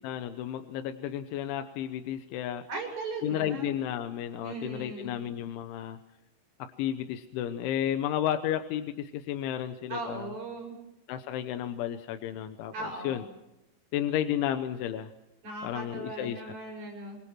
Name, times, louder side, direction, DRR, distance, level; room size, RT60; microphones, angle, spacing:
voice 1, 0.0-2.7 3.2-6.0 6.6-10.3 11.1-13.2 13.9-15.1 15.6-16.5, left 11 dB, 75° left, 8 dB, 3.2 m, -32 dB
voice 2, 2.7-3.8 4.4-5.1 9.9-10.8 12.7-13.3 15.4-17.2, right 2 dB, 45° right, 1 dB, 9.2 m, -38 dB
26.0 x 21.5 x 6.1 m, 0.89 s
omnidirectional pair, 5.9 m